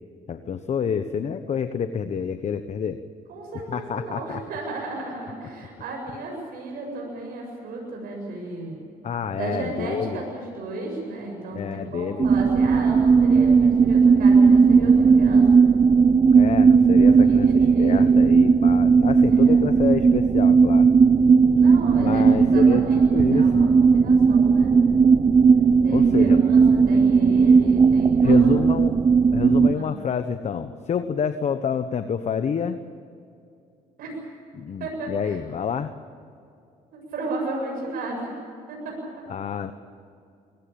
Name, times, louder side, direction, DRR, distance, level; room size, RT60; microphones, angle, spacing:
voice 1, 0.3-3.0 3.7-4.4 9.0-10.2 11.5-12.3 16.3-20.9 22.0-22.9 23.1-23.7 25.9-26.4 28.2-28.9 29.3-32.8 34.5-35.9 39.3-39.7, left 7 dB, 50° left, 10 dB, 1.1 m, -28 dB
voice 2, 3.3-8.8 9.4-15.4 16.9-18.0 19.3-19.6 21.5-24.7 25.8-28.6 29.8-29.9 34.0-34.2 34.8-35.4 36.9-38.4 38.7-39.0, right 2 dB, 80° right, 0 dB, 7.5 m, -34 dB
sound 1, 12.2-29.7, right 5 dB, 30° right, 0.7 m, -16 dB
23.5 x 17.5 x 8.8 m, 2.5 s
cardioid pair, 85°, 15 cm